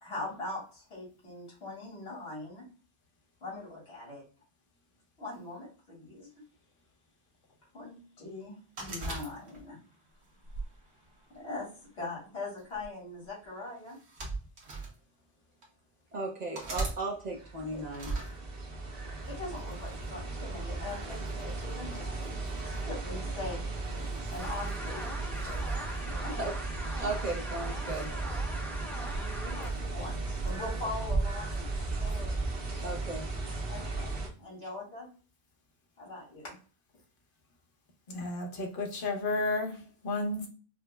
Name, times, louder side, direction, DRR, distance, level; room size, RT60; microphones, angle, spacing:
voice 1, 0.0-2.6 3.4-4.2 5.2-6.3 7.7-9.8 11.3-11.7 11.9-14.0 16.7-16.9 17.7-17.9 19.3-22.1 22.6-23.6 24.3-25.1 25.4-25.7 26.0-26.3 27.8-27.9 29.1-31.7 32.0-32.5 33.7-34.1 34.4-35.1 36.0-36.6, left 2 dB, 80° left, -4 dB, 2.0 m, -41 dB
sound 1, 8.8-9.8 10.5-11.6 12.6-12.9 13.9-14.9 15.6-15.7 16.5-17.0 17.9-18.3, right 3 dB, 85° right, 1.3 m, -37 dB
voice 2, 16.1-18.1 26.4-26.5 27.0-28.1 32.8-33.3, right 2 dB, 45° right, 0 dB, 0.7 m, -36 dB
sound 2, 17.2-34.3, right 3 dB, 65° right, 1.2 m, -35 dB
sound 3, 24.4-29.7, equal, ahead, 0.6 m, -42 dB
voice 3, 38.1-40.5, left 2 dB, 55° left, 1 dB, 1.0 m, -32 dB
4.9 x 2.0 x 2.2 m, 0.39 s
omnidirectional pair, 1.1 m